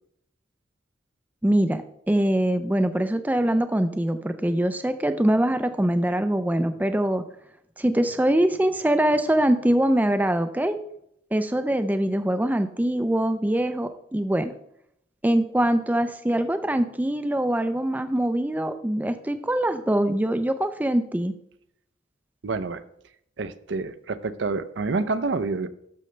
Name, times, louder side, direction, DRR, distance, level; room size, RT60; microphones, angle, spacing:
voice 1, 1.4-7.2 7.8-10.8 11.3-14.5 15.2-21.3, right 1 dB, 10° right, 9 dB, 0.4 m, -23 dB
voice 2, 22.4-22.8 23.4-25.7, right 3 dB, 65° right, 13 dB, 0.5 m, -28 dB
12.0 x 6.4 x 3.2 m, 0.73 s
head